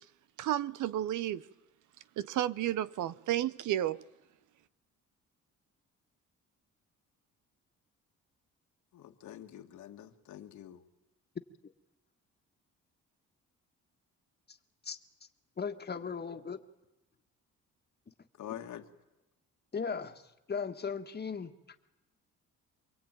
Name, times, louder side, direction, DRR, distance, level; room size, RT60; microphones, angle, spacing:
voice 1, 0.4-1.5 2.2-4.0, right 12 dB, 80° right, 0.9 m, -32 dB
voice 2, 8.9-10.8 18.4-18.9, left 11 dB, 75° left, 2.0 m, -46 dB
voice 3, 15.6-16.6 18.5-18.6 19.7-20.2 20.5-21.9, left 5 dB, 35° left, 1.8 m, -37 dB
27.5 x 22.5 x 9.1 m
cardioid pair, 90°, 30 cm